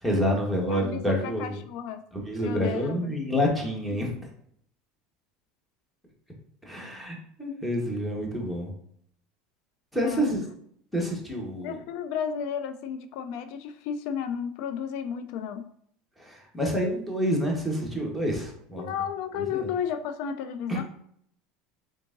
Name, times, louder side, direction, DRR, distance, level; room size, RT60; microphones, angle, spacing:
voice 1, 0.0-1.5 2.1-4.1 6.6-8.7 9.9-10.4 10.9-11.8 16.2-18.9 19.5-19.7 20.7-20.8, equal, 5° left, -1 dB, 1.3 m, -28 dB
voice 2, 0.7-2.1 2.4-3.1 10.0-10.3 11.6-15.7 18.8-20.8, left 8 dB, 65° left, 9 dB, 0.3 m, -33 dB
3.7 x 3.6 x 2.6 m, 0.68 s
supercardioid pair, 105°, 0 cm